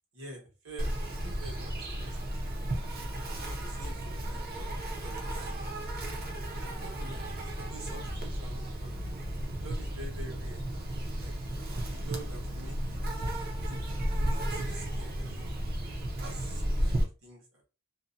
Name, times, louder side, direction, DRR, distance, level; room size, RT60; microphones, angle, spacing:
voice 1, 0.1-2.8 3.5-4.7 5.0-5.5 6.3-6.5 6.8-8.9 9.6-10.6 11.2-13.0 13.6-13.9 14.1-15.5 16.2-17.6, right 1 dB, 70° right, -1 dB, 1.1 m, -47 dB
Insect, 0.8-17.0, right 1 dB, 45° right, 0.6 m, -34 dB
2.6 x 2.1 x 2.5 m, 0.32 s
head